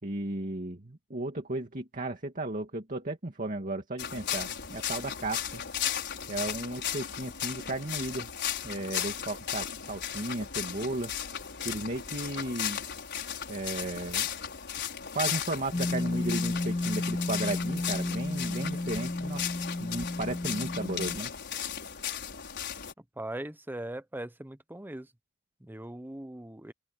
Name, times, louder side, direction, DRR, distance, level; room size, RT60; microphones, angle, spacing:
voice 1, 0.0-5.6 6.3-8.3 8.6-11.1 11.6-12.8 13.5-14.3 15.1-19.5 19.8-21.3, right 2 dB, 40° right, 2.2 m, -35 dB
sound 1, 4.0-22.9, left 9 dB, 55° left, 5.4 m, -36 dB
sound 2, 15.7-21.2, left 2 dB, 15° left, 0.4 m, -32 dB
voice 2, 23.2-25.1 25.6-26.7, right 1 dB, 10° right, 0.7 m, -40 dB
open air
head